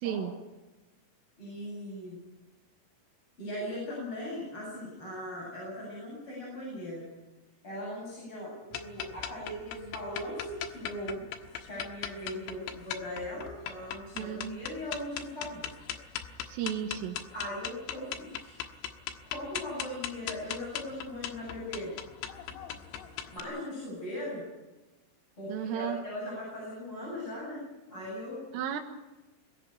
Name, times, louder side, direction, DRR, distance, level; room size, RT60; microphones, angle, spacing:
voice 1, 1.4-2.2 3.4-7.0 7.6-11.3 11.6-15.7 17.3-18.6 19.3-21.9 23.3-24.4 25.4-27.6 27.9-28.4, left 1 dB, 25° left, -5 dB, 8.7 m, -39 dB
sound 1, 8.7-23.4, left 10 dB, 85° left, 4.0 m, -39 dB
voice 2, 14.2-14.7 16.5-17.2 25.5-26.0 28.5-28.8, right 9 dB, 85° right, 4 dB, 4.0 m, -33 dB
22.0 x 16.0 x 9.2 m, 1.1 s
omnidirectional pair, 5.8 m